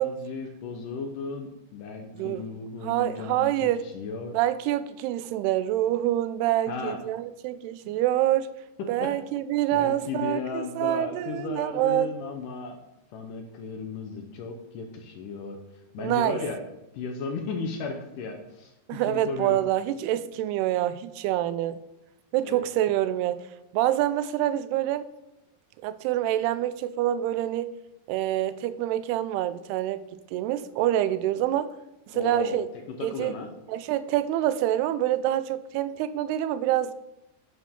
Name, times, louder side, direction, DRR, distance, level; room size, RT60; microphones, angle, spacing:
voice 1, 0.0-3.5 3.8-4.3 6.7-7.0 7.8-8.0 9.0-9.1 9.7-12.8 13.1-16.6 16.9-19.6 22.4-22.6 32.1-32.6 33.0-33.5, left 4 dB, 70° left, 4 dB, 2.1 m, -35 dB
voice 2, 2.8-3.9 4.3-8.5 8.9-12.1 16.0-16.4 18.9-21.8 22.3-23.4 23.7-25.1 25.8-27.7 28.1-30.0 30.3-31.7 32.1-32.7 33.0-33.4 33.7-36.9, right 13 dB, 90° right, 14 dB, 2.6 m, -26 dB
11.0 x 9.8 x 3.7 m, 0.92 s
omnidirectional pair, 4.5 m